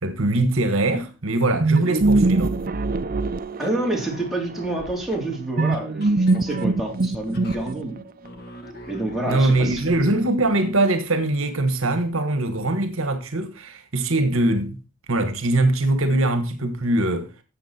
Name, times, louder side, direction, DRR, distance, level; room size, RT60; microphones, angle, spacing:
voice 1, 0.0-2.6 9.3-14.8 15.1-17.3, right 2 dB, 65° right, 1.5 m, -22 dB
sound 1, 1.6-4.2 5.6-8.0, right 2 dB, 40° right, 0.6 m, -22 dB
sound 2, 3.5-10.9, equal, 45° left, 1.8 m, -42 dB
voice 2, 3.6-8.0 8.9-10.0, right 1 dB, ahead, 3.6 m, -28 dB
13.5 x 7.7 x 4.4 m
head